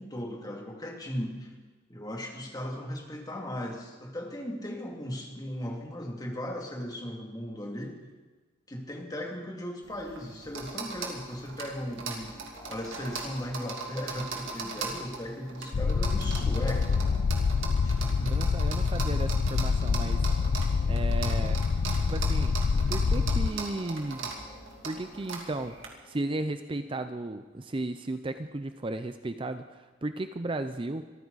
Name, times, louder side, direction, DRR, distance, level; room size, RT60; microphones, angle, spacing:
voice 1, 0.0-1.5 1.9-8.0 8.7-17.2 17.8-18.5, equal, 20° left, 1 dB, 2.4 m, -37 dB
sound 1, 9.8-25.9, right 4 dB, 80° right, 2.8 m, -40 dB
sound 2, 11.5-29.2, left 1 dB, 40° left, 2.3 m, -54 dB
sound 3, 15.7-23.5, left 4 dB, 85° left, 0.5 m, -26 dB
voice 2, 18.2-20.3 20.9-21.6 22.0-22.6 22.9-24.3 24.8-25.8 26.0-31.0, right 2 dB, 25° right, 10 dB, 0.5 m, -35 dB
25.0 x 14.5 x 4.1 m, 1.3 s
head